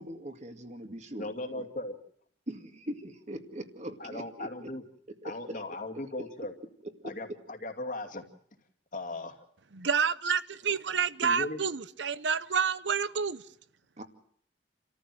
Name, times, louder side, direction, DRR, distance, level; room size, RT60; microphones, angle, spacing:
voice 1, 0.0-1.7 2.5-4.7 5.2-5.6 6.8-7.1 14.0-14.1, right 1 dB, 40° right, 2.2 m, -41 dB
voice 2, 1.2-2.0 4.0-4.8 5.2-6.5 7.0-8.2 8.9-9.4 11.0-11.6, left 2 dB, 45° left, 2.5 m, -38 dB
voice 3, 9.8-13.4, right 6 dB, 90° right, 0.9 m, -29 dB
29.0 x 14.0 x 7.8 m
head